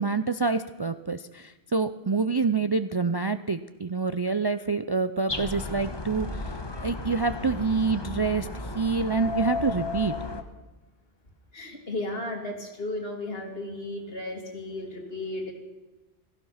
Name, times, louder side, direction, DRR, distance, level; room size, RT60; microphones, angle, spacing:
voice 1, 0.0-8.5 8.7-10.2, right 4 dB, 35° right, 11 dB, 0.4 m, -27 dB
sound 1, 5.3-10.4, left 3 dB, 25° left, 1.2 m, -34 dB
voice 2, 11.5-15.5, left 2 dB, 65° left, 2 dB, 2.8 m, -34 dB
16.5 x 15.0 x 5.8 m, 1.1 s
omnidirectional pair, 1.1 m